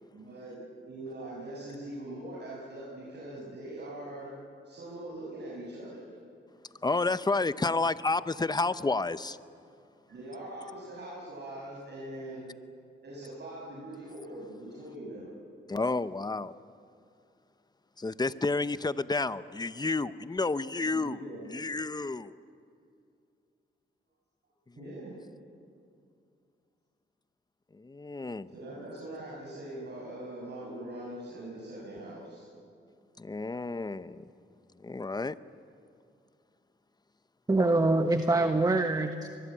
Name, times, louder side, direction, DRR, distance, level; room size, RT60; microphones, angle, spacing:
voice 1, 0.1-4.3 4.6-6.1 10.1-12.4 13.0-15.4 20.8-21.4 24.7-25.1 28.5-32.5, right 1 dB, 55° right, -5 dB, 6.4 m, -42 dB
voice 2, 6.8-9.4 15.7-16.5 18.0-21.2 21.5-22.3 24.8-24.9 27.7-28.5 33.2-34.2 34.8-35.4, left 3 dB, 20° left, 14 dB, 0.8 m, -30 dB
voice 3, 37.5-39.3, right 2 dB, 15° right, 7 dB, 1.2 m, -25 dB
24.0 x 22.0 x 8.7 m, 2.4 s
cardioid pair, 80°, 21 cm